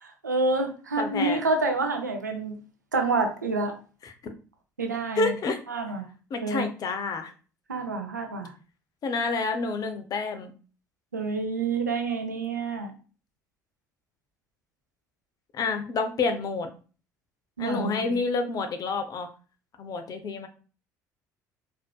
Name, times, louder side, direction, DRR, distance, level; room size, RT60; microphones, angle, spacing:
voice 1, 0.0-2.6 2.9-3.8 4.8-5.3 5.7-6.1 6.4-6.7 7.7-8.5 11.1-12.9 17.6-18.2, right 3 dB, 85° right, 0.5 m, -28 dB
voice 2, 1.0-1.4 4.0-4.1 5.2-5.6 6.3-7.3 9.0-10.5 15.5-16.7 17.6-19.3 19.8-20.5, left 3 dB, 40° left, 0.7 m, -28 dB
4.2 x 2.8 x 2.2 m
figure-of-eight pair, 55°, 9 cm